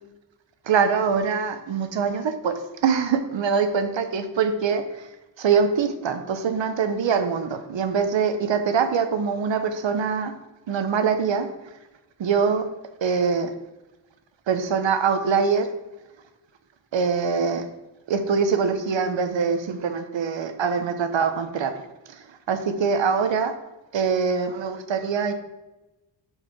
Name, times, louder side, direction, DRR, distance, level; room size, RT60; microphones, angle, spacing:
voice 1, 0.7-2.5 2.8-4.8 5.4-10.3 10.7-11.5 12.2-12.7 13.0-13.5 14.5-15.7 16.9-17.7 18.1-21.7 22.5-23.5 23.9-25.3, right 6 dB, 90° right, 8 dB, 0.9 m, -23 dB
7.3 x 4.9 x 6.0 m, 1.0 s
wide cardioid pair, 155°, 43 cm